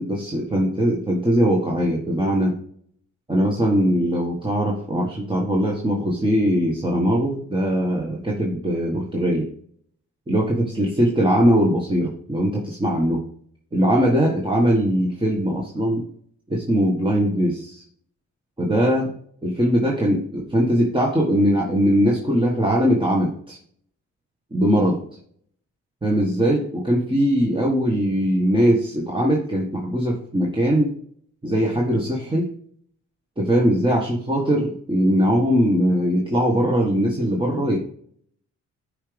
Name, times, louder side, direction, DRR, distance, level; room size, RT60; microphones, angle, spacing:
voice 1, 0.0-2.6 3.3-9.5 10.3-13.2 13.7-16.1 16.5-17.8 18.6-19.1 19.4-23.6 24.5-25.0 26.0-30.9 31.4-32.5 33.4-37.8, equal, 15° right, -2 dB, 1.6 m, -21 dB
10.0 x 5.0 x 3.4 m, 0.62 s
cardioid pair, 90°, 30 cm